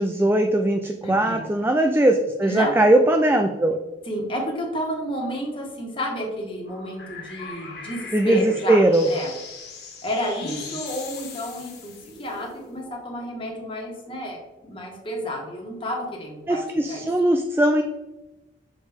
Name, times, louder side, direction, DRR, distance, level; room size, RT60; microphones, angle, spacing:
voice 1, 0.0-3.8 8.1-9.1 16.5-17.8, right 1 dB, 10° right, 5 dB, 0.3 m, -20 dB
voice 2, 1.0-1.4 2.4-2.8 4.1-8.8 9.1-9.3 10.0-17.1, equal, 30° left, -1 dB, 1.5 m, -31 dB
sound 1, 6.7-13.1, left 4 dB, 60° left, 1.9 m, -40 dB
7.0 x 5.3 x 3.6 m, 1.1 s
head